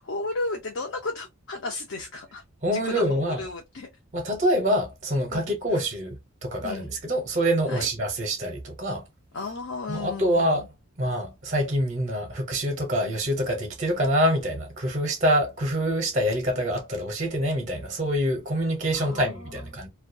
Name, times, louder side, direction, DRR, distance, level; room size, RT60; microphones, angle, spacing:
voice 1, 0.0-2.4 2.7-3.9 5.3-5.8 6.6-6.9 7.7-7.9 9.3-10.7 19.0-19.7, left 3 dB, 55° left, 0.5 m, -34 dB
voice 2, 2.6-3.4 4.1-9.0 9.9-10.7 11.0-19.9, equal, 35° right, 0.6 m, -26 dB
2.2 x 2.2 x 2.5 m
head